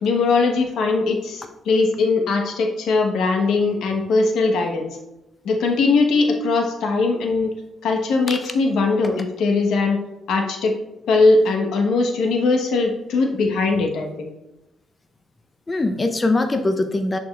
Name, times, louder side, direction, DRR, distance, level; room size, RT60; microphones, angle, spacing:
voice 1, 0.0-4.9 5.4-7.5 7.8-10.0 10.3-10.8 11.1-14.3, left 3 dB, 80° left, 2 dB, 1.1 m, -20 dB
voice 2, 15.7-17.2, left 2 dB, 25° left, 6 dB, 0.5 m, -22 dB
10.5 x 4.3 x 2.4 m, 0.95 s
cardioid pair, 90°, 0 cm